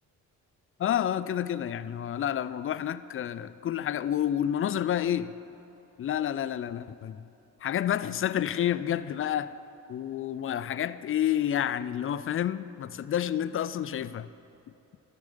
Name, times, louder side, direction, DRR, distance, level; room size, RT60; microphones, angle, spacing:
voice 1, 0.8-5.3 6.0-7.2 7.6-9.5 9.9-14.3, left 10 dB, 30° left, 0.4 m, -29 dB
13.0 x 7.0 x 5.5 m
hypercardioid pair, 50°, 43 cm